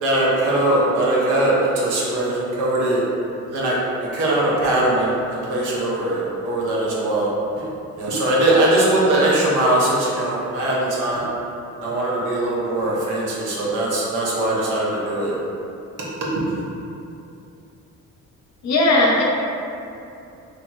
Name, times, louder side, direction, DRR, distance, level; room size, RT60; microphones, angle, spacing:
voice 1, 0.0-3.0 3.5-7.3 7.9-11.3 11.8-15.4 16.2-16.5, right 1 dB, 80° right, -6 dB, 0.8 m, -21 dB
voice 2, 18.6-19.2, left 2 dB, 65° left, -3 dB, 0.7 m, -17 dB
2.8 x 2.8 x 2.2 m, 2.7 s
cardioid pair, 90°, 30 cm